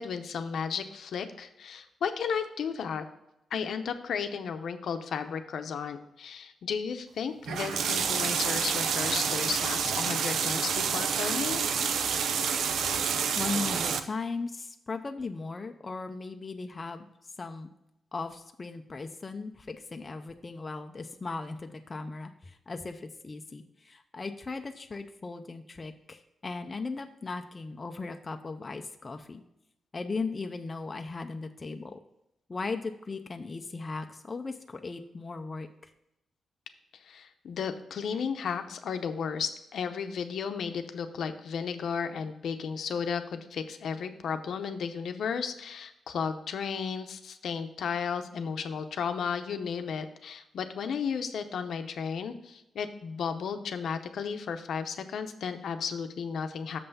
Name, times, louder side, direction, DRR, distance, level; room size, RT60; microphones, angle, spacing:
voice 1, 0.0-3.0 3.5-11.6 37.0-56.8, left 6 dB, 70° left, 8 dB, 0.7 m, -34 dB
sound 1, 7.5-14.0, right 6 dB, 85° right, 0.6 m, -28 dB
voice 2, 13.4-17.1 17.4-17.7 18.1-29.4 29.9-32.0 32.5-35.7, left 3 dB, 25° left, 6 dB, 0.4 m, -37 dB
6.8 x 5.6 x 5.4 m, 0.86 s
wide cardioid pair, 170°, 0 cm